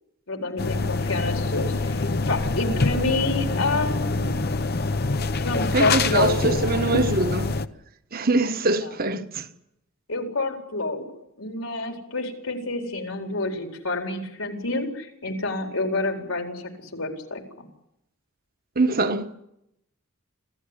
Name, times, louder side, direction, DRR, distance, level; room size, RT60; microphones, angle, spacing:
voice 1, 0.3-4.5 5.3-6.5 8.8-8.9 10.1-11.0 11.4-17.4, left 2 dB, 75° left, 4.4 m, -28 dB
sound 1, 0.6-7.7, left 3 dB, 45° left, 0.9 m, -25 dB
voice 2, 5.7-7.5 8.1-9.5 18.7-19.3, right 3 dB, 45° right, 1.4 m, -23 dB
26.5 x 16.0 x 10.0 m
head